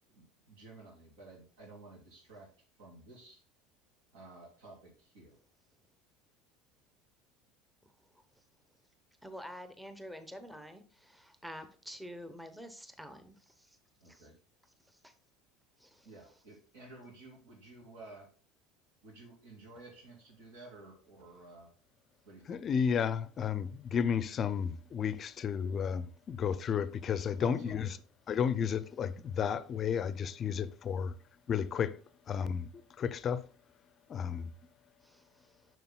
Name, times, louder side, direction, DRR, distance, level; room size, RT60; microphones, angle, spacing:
voice 1, 0.1-2.5 2.8-3.4 4.1-5.4 14.0-14.4 16.0-18.3 19.0-21.7 22.2-22.6 27.4-27.9, right 2 dB, 80° right, 2.6 m, -53 dB
voice 2, 9.2-13.8 14.0-14.3 15.0-15.1 15.8-16.1 35.0-35.5, equal, 5° right, 0.8 m, -48 dB
voice 3, 22.5-28.0 28.3-31.2 31.5-32.0 32.3-33.4 34.1-34.5, left 7 dB, 40° left, 0.4 m, -32 dB
6.7 x 6.3 x 2.2 m
hypercardioid pair, 90°, 0 cm